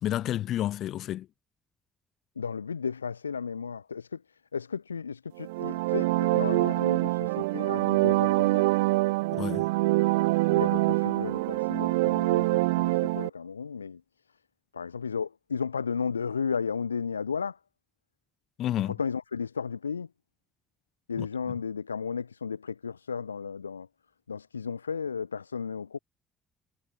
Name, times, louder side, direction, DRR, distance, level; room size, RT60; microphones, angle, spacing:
voice 1, 0.0-1.3 9.3-9.7 18.6-18.9 21.2-21.3, left 12 dB, 60° left, 1.4 m, -30 dB
voice 2, 2.4-8.8 10.5-14.0 14.7-17.6 18.9-20.1 21.1-23.9 24.3-26.0, left 6 dB, 85° left, 2.5 m, -34 dB
sound 1, 5.4-13.3, right 22 dB, 70° right, 0.8 m, -25 dB
figure-of-eight pair, 45°, 0 cm